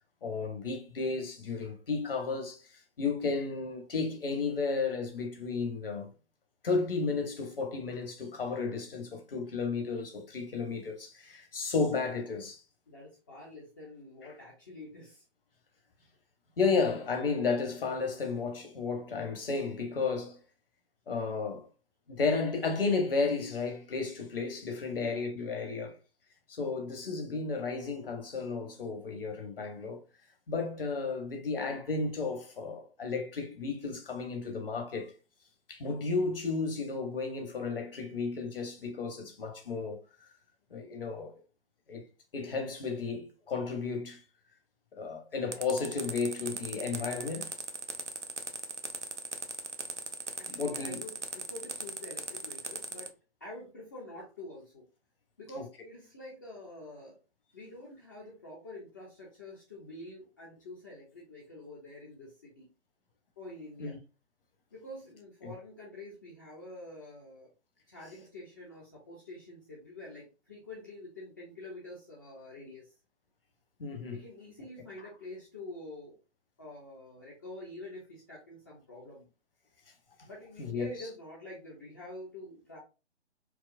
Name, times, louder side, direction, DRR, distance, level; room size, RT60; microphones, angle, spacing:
voice 1, 0.2-6.1 6.6-12.6 16.6-20.4 21.1-21.7 22.1-25.9 26.5-30.0 30.5-35.1 35.7-40.0 40.7-41.3 41.9-42.0 42.3-44.2 44.9-47.5 50.5-51.0 63.8-64.0 65.4-65.5 73.8-74.2 80.6-80.9, left 4 dB, 55° left, 1.1 m, -33 dB
voice 2, 12.9-15.2 24.9-25.3 50.4-53.1 53.4-54.9 55.4-57.2 57.5-62.7 63.4-64.0 64.7-67.5 67.9-72.9 74.1-76.2 76.6-79.3 80.2-82.8, left 1 dB, 20° left, 0.5 m, -47 dB
sound 1, 45.5-53.1, right 3 dB, 90° right, 0.7 m, -38 dB
4.6 x 2.0 x 2.5 m
figure-of-eight pair, 130°, 34 cm